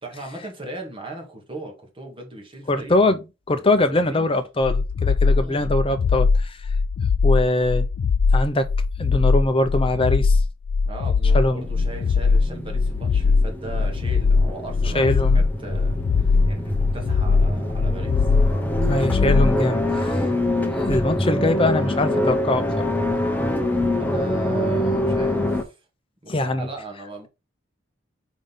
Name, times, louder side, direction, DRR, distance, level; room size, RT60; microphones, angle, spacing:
voice 1, 0.0-3.0 3.9-4.3 5.2-5.7 10.8-18.3 24.0-25.8 26.2-27.3, right 2 dB, 25° right, 1.9 m, -38 dB
voice 2, 2.7-6.6 7.2-7.9 8.3-8.7 9.0-10.4 11.3-11.6 14.9-15.4 18.8-20.2 20.9-22.8 26.3-26.7, left 2 dB, 30° left, 0.7 m, -22 dB
sound 1, 4.6-19.6, left 4 dB, 75° left, 0.4 m, -20 dB
sound 2, 11.5-25.6, left 1 dB, 10° left, 1.0 m, -25 dB
5.1 x 3.9 x 5.5 m
head